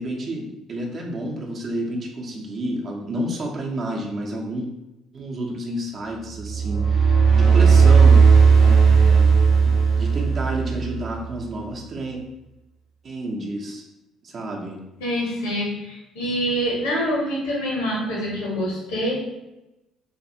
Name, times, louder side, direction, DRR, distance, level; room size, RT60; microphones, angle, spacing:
voice 1, 0.0-4.7 5.1-8.3 8.6-9.3 9.7-12.2 13.0-13.8 14.2-14.8, right 1 dB, 50° right, -1 dB, 0.7 m, -30 dB
sound 1, 6.4-11.1, right 5 dB, 85° right, 0.9 m, -15 dB
voice 2, 15.0-19.1, equal, 80° left, -3 dB, 0.9 m, -25 dB
2.5 x 2.4 x 2.7 m, 0.96 s
hypercardioid pair, 55°, 0 cm